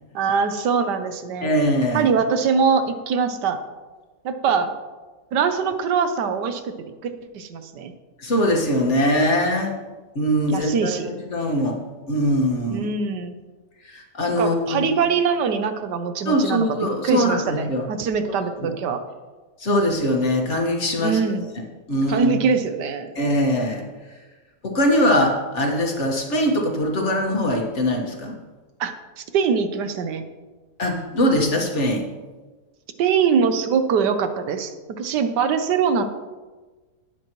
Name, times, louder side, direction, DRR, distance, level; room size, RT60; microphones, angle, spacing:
voice 1, 0.1-1.5 1.9-3.6 4.2-4.7 5.3-6.6 7.0-7.9 10.5-11.1 12.7-13.3 14.4-16.7 17.0-19.0 21.0-21.5 22.1-23.1 28.8-30.2 33.0-36.0, right 6 dB, 85° right, 8 dB, 1.5 m, -23 dB
voice 2, 1.4-2.1 8.2-9.7 10.1-11.8 12.1-12.9 13.8-14.9 16.2-17.9 18.6-18.7 19.6-21.2 21.5-21.6 21.9-22.3 23.1-23.8 24.6-28.3 30.8-32.1, equal, 45° left, 0 dB, 1.8 m, -22 dB
18.5 x 7.4 x 3.1 m, 1.3 s
omnidirectional pair, 1.8 m